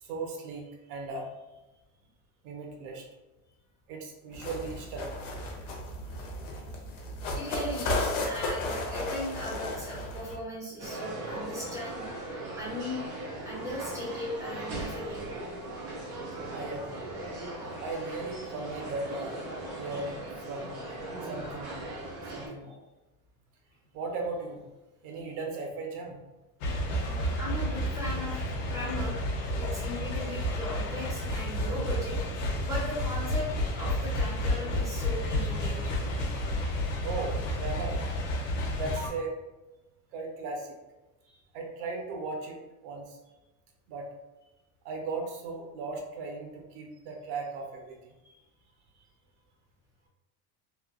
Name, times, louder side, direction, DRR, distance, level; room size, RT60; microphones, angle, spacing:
voice 1, 0.0-1.3 2.4-3.1 3.9-5.2 16.5-17.0 17.8-19.5 19.7-20.7 21.2-21.8 22.3-22.8 23.9-24.6 25.0-26.2 27.7-27.8 35.7-35.8 36.2-36.5 37.0-38.0 38.7-39.4 40.1-40.7 41.3-43.2 43.9-44.1 44.8-48.0, right 3 dB, 70° right, 1 dB, 0.8 m, -37 dB
sound 1, 4.3-10.4, left 2 dB, 40° left, 0.5 m, -34 dB
voice 2, 7.4-12.1 12.6-13.0 13.4-15.3 26.9-28.4 28.7-29.2 29.6-35.9 48.2-48.4, left 1 dB, 10° right, -6 dB, 0.4 m, -38 dB
sound 2, 10.8-22.5, right 2 dB, 85° right, 1.4 m, -39 dB
sound 3, 26.6-39.1, left 1 dB, 70° left, 0.8 m, -31 dB
3.2 x 2.1 x 2.4 m, 1.0 s
supercardioid pair, 150°, 46 cm